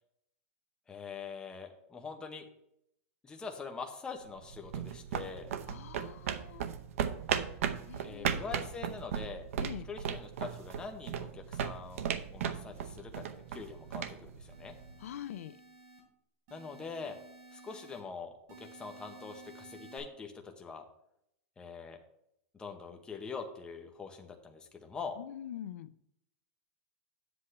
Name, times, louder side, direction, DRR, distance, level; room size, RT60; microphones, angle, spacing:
voice 1, 0.9-2.5 3.2-5.5 8.0-9.5 9.9-14.7 16.5-17.2 17.5-20.8 21.6-22.0 22.5-25.1, left 5 dB, 10° left, 3 dB, 0.8 m, -44 dB
sound 1, 4.3-15.1, right 8 dB, 80° right, 0.7 m, -37 dB
voice 2, 5.7-6.7 7.9-8.4 9.6-9.9 15.0-15.6 25.2-25.9, left 10 dB, 85° left, 15 dB, 0.5 m, -44 dB
sound 2, 12.9-14.0 14.5-16.0 16.5-18.0 18.5-20.0, right 2 dB, 40° right, 3.6 m, -55 dB
9.7 x 7.8 x 3.2 m, 0.76 s
supercardioid pair, 155°, 7 cm